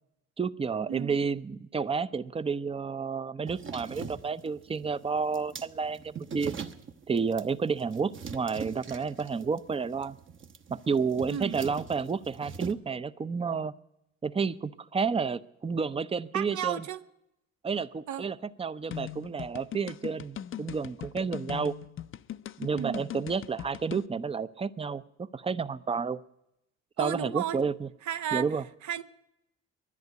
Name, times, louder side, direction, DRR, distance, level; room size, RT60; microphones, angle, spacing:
voice 1, 0.4-6.5 7.1-10.2 10.7-13.7 14.2-16.8 17.6-21.7 22.6-25.0 25.3-26.2 27.0-27.9 28.3-28.6, right 5 dB, 20° right, 0.5 m, -31 dB
sound 1, 3.5-12.7, right 6 dB, 40° right, 1.0 m, -42 dB
voice 2, 16.3-17.0 18.1-18.2 22.7-23.0 27.0-27.6 28.0-28.5 28.8-29.0, right 9 dB, 70° right, 0.9 m, -33 dB
sound 2, 18.9-24.1, left 10 dB, 45° left, 0.5 m, -40 dB
11.0 x 10.5 x 9.2 m
cardioid pair, 90°, 30 cm